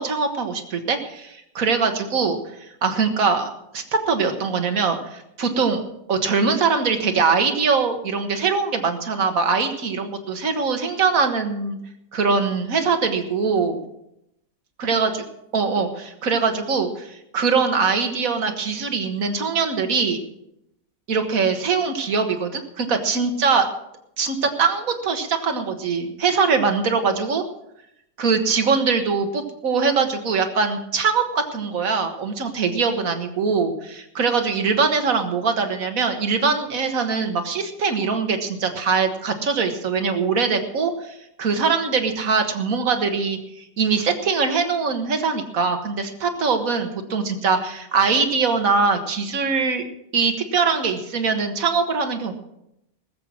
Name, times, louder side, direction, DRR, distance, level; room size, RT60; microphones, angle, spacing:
voice 1, 0.0-2.4 2.8-5.8 6.1-11.8 12.1-13.8 14.8-15.1 15.5-20.2 21.1-23.7 24.2-27.4 28.2-49.8 50.1-52.3, right 5 dB, 70° right, 6 dB, 1.9 m, -22 dB
19.5 x 7.7 x 6.3 m, 0.82 s
omnidirectional pair, 1.5 m